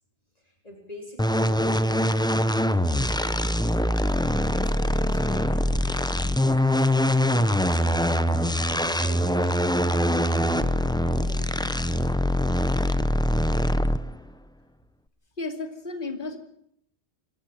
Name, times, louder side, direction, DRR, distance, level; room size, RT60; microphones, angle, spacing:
voice 1, 0.4-4.0 4.5-8.3 8.6-12.2, left 1 dB, 35° left, 1 dB, 4.4 m, -45 dB
sound 1, 1.2-14.2, equal, 5° left, 0.7 m, -23 dB
voice 2, 15.4-16.4, left 3 dB, 50° left, 6 dB, 2.9 m, -33 dB
26.5 x 12.5 x 8.9 m, 0.71 s
omnidirectional pair, 1.1 m